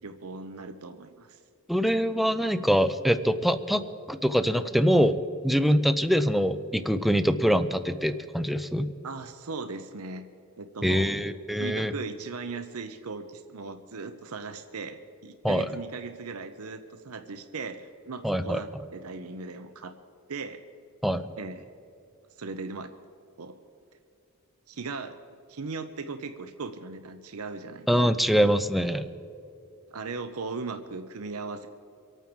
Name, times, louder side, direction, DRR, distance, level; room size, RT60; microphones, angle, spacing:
voice 1, 0.0-1.4 9.0-10.2 10.6-11.1 11.5-19.9 20.3-20.6 21.4-21.6 22.4-22.9 23.4-23.6 24.7-25.2 25.5-27.9 29.9-31.7, right 4 dB, 80° right, 8 dB, 0.8 m, -38 dB
voice 2, 1.7-3.8 4.1-5.2 5.4-8.9 10.8-11.9 15.4-15.7 18.2-18.6 21.0-21.3 27.9-29.1, equal, ahead, 11 dB, 0.6 m, -24 dB
25.5 x 9.1 x 4.6 m, 2.6 s
head